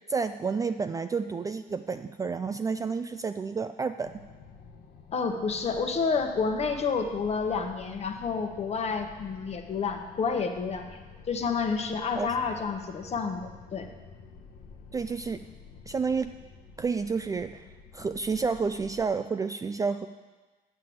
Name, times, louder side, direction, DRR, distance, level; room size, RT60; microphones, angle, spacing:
voice 1, 0.1-4.2 12.2-12.3 14.9-15.4 15.9-16.3 16.8-17.6 17.9-20.1, right 5 dB, 20° right, 9 dB, 0.3 m, -30 dB
sound 1, 4.0-19.1, left 5 dB, 75° left, 1.0 m, -50 dB
voice 2, 5.1-11.0 11.3-13.9, left 5 dB, 40° left, 5 dB, 1.1 m, -29 dB
7.6 x 6.6 x 7.8 m, 1.3 s
cardioid pair, 110°, 17 cm